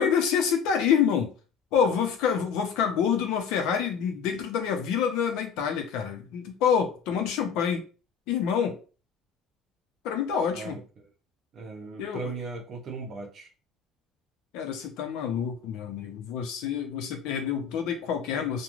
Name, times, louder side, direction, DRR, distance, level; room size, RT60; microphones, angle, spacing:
voice 1, 0.0-1.3 1.7-7.8 8.3-8.8 10.0-10.8 12.0-12.3 14.5-18.6, left 7 dB, 80° left, 5 dB, 0.6 m, -27 dB
voice 2, 10.5-10.8 11.5-13.5, right 4 dB, 35° right, 2 dB, 0.6 m, -37 dB
3.1 x 2.2 x 2.4 m, 0.35 s
cardioid pair, 175°, 0 cm